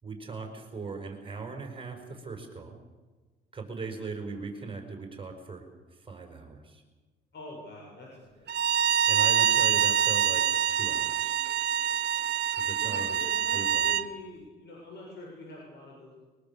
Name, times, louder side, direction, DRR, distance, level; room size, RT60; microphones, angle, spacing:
voice 1, 0.0-2.8 3.5-5.6 5.9-6.8 9.1-11.3 12.5-13.2 13.5-13.9, right 4 dB, 25° right, 3 dB, 5.3 m, -39 dB
voice 2, 7.3-8.5 12.7-16.2, left 2 dB, 60° left, -2 dB, 7.5 m, -45 dB
Bowed string instrument, 8.5-14.1, right 9 dB, 60° right, 1.0 m, -25 dB
23.0 x 22.5 x 6.9 m, 1.3 s
cardioid pair, 90°, 20 cm